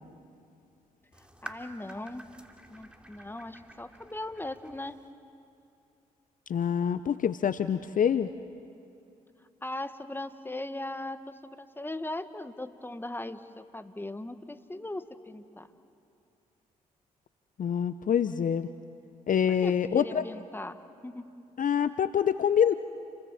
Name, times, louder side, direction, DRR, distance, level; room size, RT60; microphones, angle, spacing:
sound 1, 1.1-5.1, right 1 dB, 5° right, 3.0 m, -49 dB
voice 1, 1.4-2.2 2.7-5.0 9.6-15.7 19.5-20.8 21.0-21.2, left 1 dB, 10° left, 10 dB, 1.4 m, -39 dB
voice 2, 6.5-8.3 17.6-18.7 19.3-20.2 21.6-22.7, left 8 dB, 50° left, 13 dB, 0.7 m, -26 dB
30.0 x 23.5 x 7.1 m, 2.6 s
hypercardioid pair, 40°, 18 cm